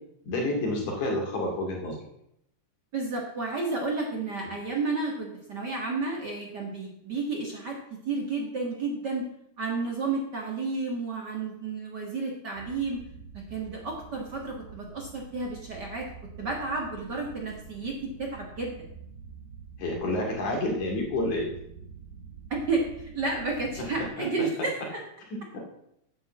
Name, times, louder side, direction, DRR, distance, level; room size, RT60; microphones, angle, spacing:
voice 1, 0.2-2.0 4.4-4.5 19.8-21.5 25.5-25.6, left 1 dB, 70° left, 0 dB, 3.9 m, -29 dB
voice 2, 2.9-9.3 9.6-13.0 13.3-16.1 16.4-18.8 22.5-25.0, right 3 dB, 40° right, 0 dB, 1.9 m, -31 dB
sound 1, 12.5-24.1, right 5 dB, 90° right, 3.6 m, -47 dB
9.0 x 7.5 x 7.4 m, 0.77 s
omnidirectional pair, 3.5 m